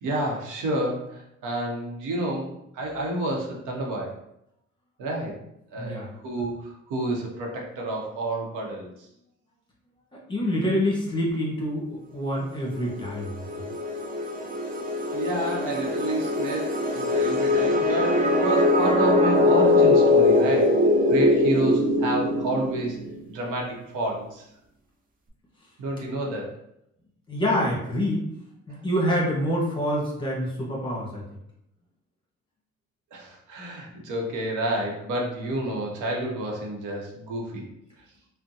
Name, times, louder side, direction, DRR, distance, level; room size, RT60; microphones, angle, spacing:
voice 1, 0.0-4.2 5.0-5.4 5.7-8.9 15.1-20.8 21.1-23.0 23.3-24.4 25.8-26.5 33.1-37.7, right 1 dB, 90° right, -1 dB, 0.8 m, -29 dB
voice 2, 5.8-6.1 10.3-13.4 27.3-28.3 28.7-31.2, equal, 15° left, -4 dB, 1.2 m, -26 dB
sound 1, 12.7-23.2, left 2 dB, 30° right, 0.5 m, -22 dB
3.6 x 2.1 x 2.7 m, 0.79 s
cardioid pair, 90°, 30 cm